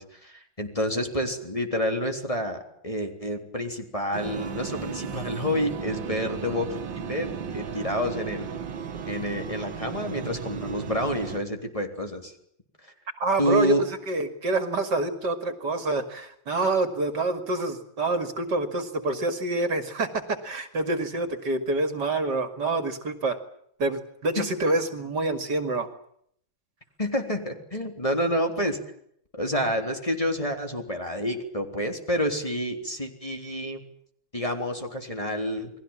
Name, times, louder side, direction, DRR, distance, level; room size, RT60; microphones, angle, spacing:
voice 1, 0.0-8.5 9.1-12.3 13.4-13.8 24.4-24.5 27.0-28.8 29.3-33.8 34.3-35.7, equal, 15° left, 5 dB, 3.7 m, -29 dB
sound 1, 4.1-11.4, right 7 dB, 75° right, 2.2 m, -35 dB
voice 2, 13.2-23.4 23.8-25.9, right 2 dB, 60° right, 10 dB, 2.8 m, -27 dB
29.5 x 21.5 x 7.4 m, 0.69 s
omnidirectional pair, 2.1 m